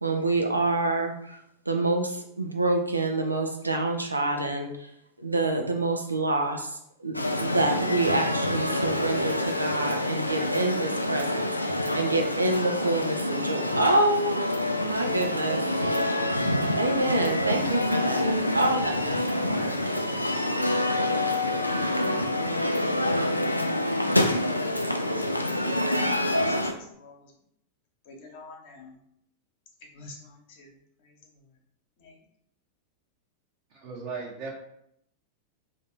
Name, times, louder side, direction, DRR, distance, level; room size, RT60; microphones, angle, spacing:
voice 1, 0.0-1.4 1.7-4.9 5.2-14.4 14.7-15.6 16.8-19.7, right 2 dB, 85° right, 3 dB, 0.5 m, -27 dB
sound 1, 7.1-26.7, left 1 dB, 85° left, 0.3 m, -27 dB
voice 2, 25.6-27.3 28.0-28.9 29.9-30.7 31.0-31.5 32.0-32.2, left 3 dB, 50° left, 0 dB, 1.0 m, -48 dB
voice 3, 33.7-34.5, right 4 dB, 45° right, -5 dB, 0.9 m, -36 dB
3.4 x 2.7 x 4.3 m, 0.75 s
figure-of-eight pair, 90°, 0 cm